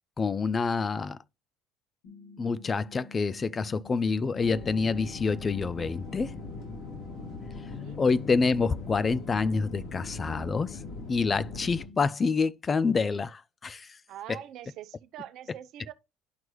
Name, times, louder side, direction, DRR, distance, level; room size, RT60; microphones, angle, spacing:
voice 1, 0.2-1.2 2.4-6.4 8.0-10.8 11.1-13.9 14.3-14.4, left 4 dB, 30° left, 0.4 m, -27 dB
sound 1, 2.0-12.0, left 3 dB, 80° left, 3.8 m, -50 dB
sound 2, 4.4-11.9, left 4 dB, 60° left, 2.8 m, -40 dB
voice 2, 7.7-8.0 14.1-15.9, right 12 dB, 60° right, 0.7 m, -44 dB
11.0 x 4.5 x 3.1 m
hypercardioid pair, 65°, 0 cm